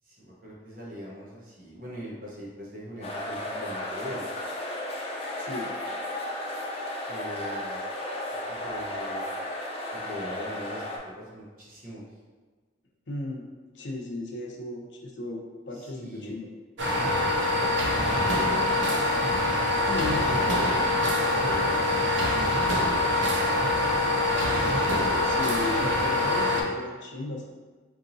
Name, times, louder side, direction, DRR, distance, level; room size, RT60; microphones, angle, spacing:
voice 1, 0.1-4.2 7.1-7.8 8.5-9.2 9.9-12.1 15.7-16.3 17.0-19.0 21.0-23.1, equal, 50° right, -5 dB, 0.9 m, -42 dB
sound 1, 3.0-11.0, left 1 dB, 30° left, 0.6 m, -34 dB
voice 2, 5.4-5.7 13.1-13.5 13.7-16.5 19.8-20.3 25.2-27.5, left 2 dB, 70° left, 0 dB, 0.6 m, -35 dB
sound 2, 16.8-26.6, left 2 dB, 75° right, 0.6 m, -24 dB
4.6 x 2.8 x 2.6 m, 1.4 s
head